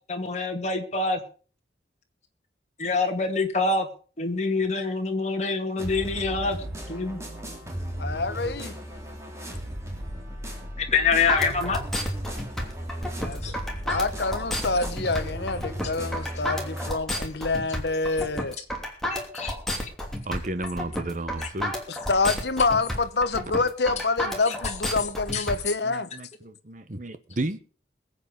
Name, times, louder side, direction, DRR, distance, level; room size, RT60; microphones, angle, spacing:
voice 1, 0.1-1.2 2.8-3.9 4.2-6.6 6.9-7.2 10.8-11.8 13.4-13.5 19.1-19.9 21.4-21.5 24.5-24.6 25.3-25.5, left 4 dB, 35° left, 2.2 m, -26 dB
sound 1, 5.8-16.9, right 1 dB, 15° right, 3.0 m, -35 dB
voice 2, 8.0-8.7 13.2-13.5 13.8-18.6 21.9-26.1, left 3 dB, 60° left, 1.0 m, -27 dB
sound 2, 11.3-25.6, left 1 dB, ahead, 2.9 m, -31 dB
voice 3, 20.3-21.7 25.8-27.6, right 2 dB, 45° right, 1.1 m, -32 dB
21.5 x 8.2 x 5.2 m
head